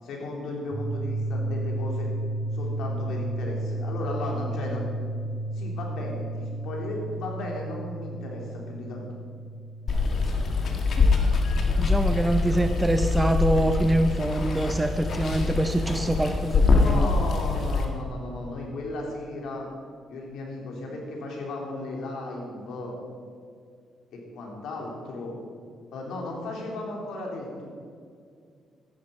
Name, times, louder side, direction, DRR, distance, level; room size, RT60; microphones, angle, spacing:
voice 1, 0.0-2.1 2.5-4.8 5.5-9.1 16.5-19.7 20.1-22.9 24.1-25.4 25.9-27.7, left 2 dB, 75° left, -1 dB, 3.7 m, -35 dB
sound 1, 0.7-12.6, right 2 dB, 10° left, 4.3 m, -33 dB
Water, 9.9-17.8, left 3 dB, 55° left, 1.9 m, -24 dB
voice 2, 11.8-17.1, right 1 dB, 15° right, 7 dB, 0.7 m, -25 dB
14.0 x 11.5 x 5.4 m, 2.2 s
cardioid pair, 90°, 0 cm